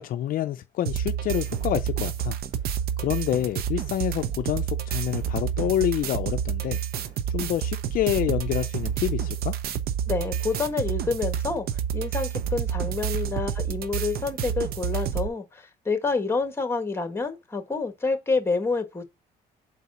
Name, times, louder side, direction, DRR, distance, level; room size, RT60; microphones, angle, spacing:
voice 1, 0.0-2.4 3.0-6.8 7.3-9.5, left 12 dB, 55° left, 0.4 m, -27 dB
sound 1, 0.8-15.3, right 9 dB, 65° right, 0.7 m, -29 dB
voice 2, 10.1-11.7 11.9-19.0, left 4 dB, 15° left, 1.4 m, -28 dB
4.7 x 4.1 x 4.8 m
cardioid pair, 110°, 17 cm